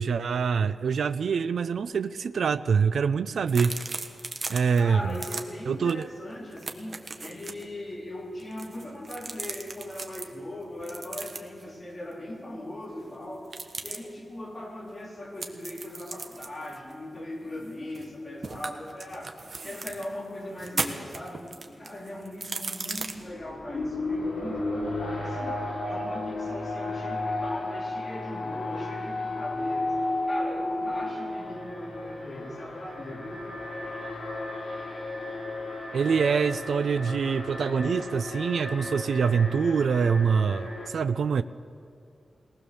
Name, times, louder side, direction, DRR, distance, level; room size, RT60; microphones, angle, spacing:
voice 1, 0.0-3.8 4.5-5.2 5.7-6.1 35.9-41.4, right 6 dB, 85° right, 12 dB, 0.5 m, -25 dB
sound 1, 3.5-4.8 5.1-5.4 5.9-6.0 6.3-7.6 8.4-10.3 10.8-11.6 13.4-14.0 15.4-18.1 18.4-20.1 20.5-23.1, right 3 dB, 40° right, 1.3 m, -36 dB
voice 2, 4.8-13.5 13.8-19.3 19.6-30.0 30.3-33.5, left 1 dB, 25° left, -3 dB, 3.9 m, -39 dB
Alarm, 23.0-40.9, left 2 dB, 65° left, 6.2 m, -33 dB
21.5 x 19.0 x 7.0 m, 2.4 s
wide cardioid pair, 175°, 0 cm